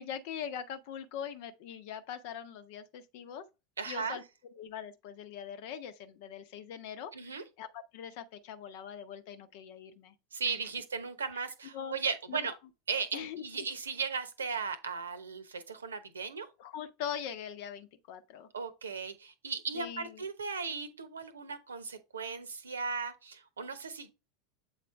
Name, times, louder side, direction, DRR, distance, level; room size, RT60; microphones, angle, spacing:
voice 1, 0.0-3.4 3.8-10.1 10.5-10.6 11.7-12.0 12.3-12.6 13.1-13.7 16.6-18.5 19.7-20.2, left 8 dB, 50° left, 0.8 m, -42 dB
voice 2, 3.8-4.2 7.1-7.4 10.3-12.5 12.9-16.5 18.5-24.1, right 5 dB, 75° right, 0.9 m, -37 dB
8.0 x 4.1 x 3.2 m
figure-of-eight pair, 80°, 0 cm